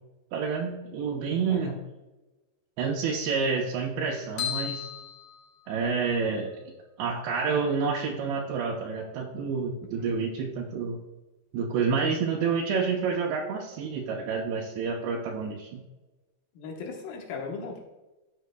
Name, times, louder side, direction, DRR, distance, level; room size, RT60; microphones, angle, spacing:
voice 1, 0.3-1.7 2.8-4.9 5.7-6.5 7.0-11.0 11.5-15.8, right 5 dB, 80° right, -2 dB, 2.9 m, -28 dB
sound 1, 4.4-6.2, left 9 dB, 90° left, 4.7 m, -35 dB
voice 2, 16.5-17.8, left 4 dB, 65° left, 1 dB, 2.5 m, -37 dB
13.0 x 8.1 x 2.2 m, 1.1 s
omnidirectional pair, 5.1 m